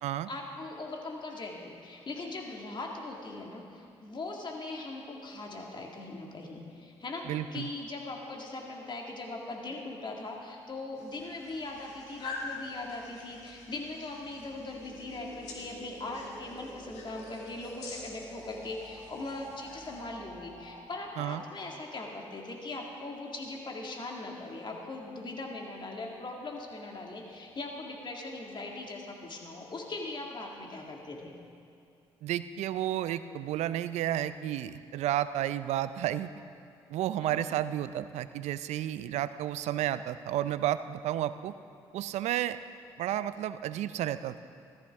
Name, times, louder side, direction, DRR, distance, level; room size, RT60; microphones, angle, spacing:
voice 1, 0.3-31.3 37.2-37.6, left 2 dB, 40° left, 0 dB, 2.1 m, -40 dB
voice 2, 7.3-7.7 21.2-21.4 32.2-36.3 36.9-41.5 41.9-42.6 43.0-44.4, right 12 dB, 75° right, 13 dB, 0.5 m, -32 dB
sound 1, 11.0-20.0, left 3 dB, 80° left, 1.9 m, -47 dB
sound 2, 11.8-21.1, right 2 dB, 35° right, 2.2 m, -50 dB
15.5 x 13.5 x 3.6 m, 2.4 s
supercardioid pair, 55°, 12 cm